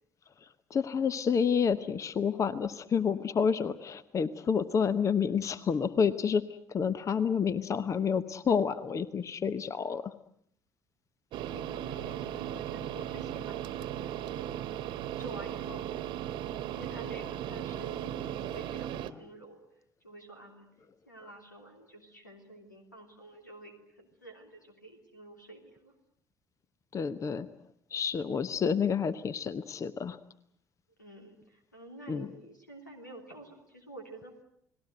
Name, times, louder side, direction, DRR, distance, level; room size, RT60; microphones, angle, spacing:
voice 1, 0.4-6.4 6.7-10.1 26.9-27.5 27.9-30.2 32.1-32.3, left 6 dB, 35° left, 15 dB, 0.9 m, -29 dB
voice 2, 11.3-14.5 15.0-16.1 16.7-19.6 20.0-20.7 21.0-25.9 31.0-34.3, right 2 dB, 90° left, 3 dB, 3.1 m, -49 dB
sound 1, 11.3-19.1, right 11 dB, 55° right, 1.3 m, -37 dB
30.0 x 20.0 x 7.9 m, 0.70 s
figure-of-eight pair, 55°, 10 cm